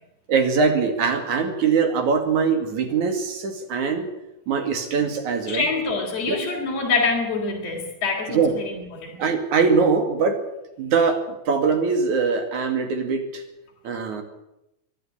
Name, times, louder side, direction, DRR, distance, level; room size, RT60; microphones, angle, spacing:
voice 1, 0.3-4.1 4.5-5.7 6.2-6.4 8.3-8.5 9.2-10.4 10.8-13.4 13.8-14.2, right 5 dB, 70° right, 6 dB, 3.7 m, -22 dB
voice 2, 5.5-9.2, left 4 dB, 55° left, -1 dB, 4.4 m, -25 dB
23.5 x 11.0 x 9.9 m, 0.89 s
omnidirectional pair, 3.6 m